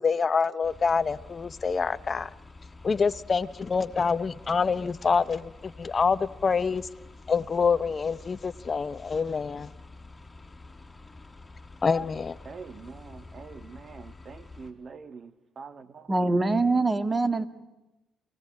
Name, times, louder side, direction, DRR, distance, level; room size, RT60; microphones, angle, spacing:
voice 1, 0.0-2.3 2.8-6.9 7.3-9.7 11.8-12.4, left 5 dB, 40° left, 0.8 m, -26 dB
sound 1, 0.6-14.7, left 3 dB, 15° left, 4.4 m, -48 dB
voice 2, 12.5-16.3, right 5 dB, 50° right, 1.7 m, -45 dB
voice 3, 16.1-17.5, right 3 dB, 25° right, 2.2 m, -24 dB
28.0 x 19.5 x 8.7 m
supercardioid pair, 60°, 0 cm